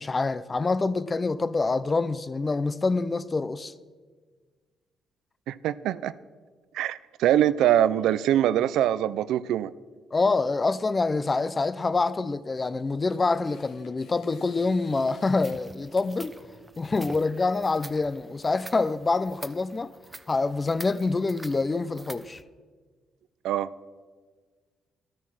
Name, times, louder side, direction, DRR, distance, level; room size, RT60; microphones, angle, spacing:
voice 1, 0.0-3.7 10.1-16.4 16.8-19.9 20.3-22.4, left 3 dB, 30° left, 0.6 m, -26 dB
voice 2, 5.5-6.1 6.7-9.7 23.4-23.7, right 11 dB, 85° right, 0.4 m, -23 dB
Tearing, 12.4-19.2, left 4 dB, 85° left, 2.8 m, -57 dB
sound 1, 14.9-22.4, right 2 dB, 15° right, 0.8 m, -47 dB
13.5 x 13.0 x 6.1 m
cardioid pair, 90°, 0 cm